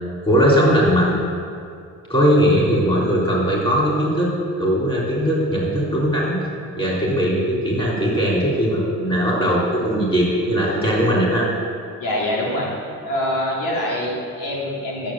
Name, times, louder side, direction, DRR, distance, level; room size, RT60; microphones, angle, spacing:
voice 1, 0.2-1.2 2.1-4.3 4.6-6.4 6.8-11.5, equal, 15° left, -5 dB, 3.7 m, -19 dB
voice 2, 12.0-12.7 13.0-15.1, left 1 dB, 90° left, -4 dB, 3.1 m, -24 dB
12.0 x 7.2 x 7.6 m, 2.4 s
cardioid pair, 130°, 31 cm